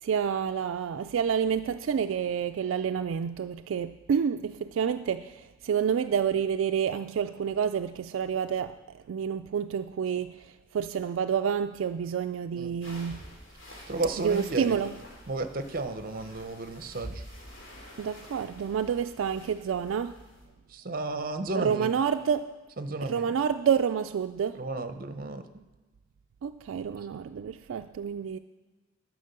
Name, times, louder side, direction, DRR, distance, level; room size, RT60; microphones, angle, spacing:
voice 1, 0.0-13.2 14.2-14.9 18.0-20.2 21.6-22.6 23.0-24.6 26.4-28.4, right 7 dB, 70° right, 7 dB, 0.3 m, -29 dB
sound 1, 12.8-20.5, equal, 75° left, 2.9 m, -47 dB
voice 2, 13.9-14.8 15.3-17.2 20.7-21.9 22.8-23.3 24.5-25.4, right 2 dB, 45° right, 9 dB, 0.7 m, -33 dB
11.0 x 6.1 x 6.7 m, 1.2 s
head